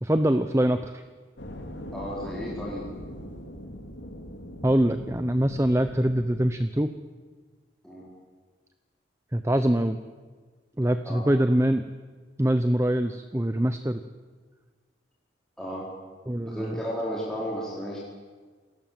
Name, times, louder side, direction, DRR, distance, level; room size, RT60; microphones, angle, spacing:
voice 1, 0.0-1.0 4.6-6.9 9.3-10.0 10.8-11.8 12.4-14.0 16.3-16.8, right 1 dB, 15° right, 9 dB, 0.7 m, -24 dB
sound 1, 1.4-6.5, equal, 80° left, 3.1 m, -40 dB
voice 2, 1.9-2.9 7.8-8.1 11.0-11.3 15.6-15.9 16.5-18.0, equal, 5° left, -6 dB, 4.4 m, -33 dB
28.0 x 19.0 x 7.6 m, 1.4 s
head